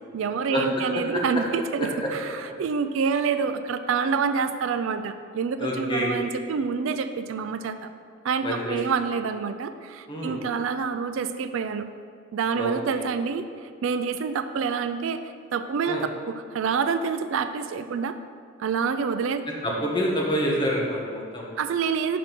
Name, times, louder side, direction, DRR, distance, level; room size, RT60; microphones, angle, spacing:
voice 1, 0.1-7.9 8.2-11.9 12.3-15.2 15.5-18.2 18.6-19.4 21.6-22.2, right 5 dB, 70° right, 10 dB, 0.3 m, -27 dB
voice 2, 5.6-6.2 8.4-8.8 10.1-10.4 12.5-13.1 15.8-16.0 19.6-21.5, equal, 25° left, -3 dB, 1.2 m, -27 dB
5.9 x 5.0 x 5.9 m, 2.2 s
head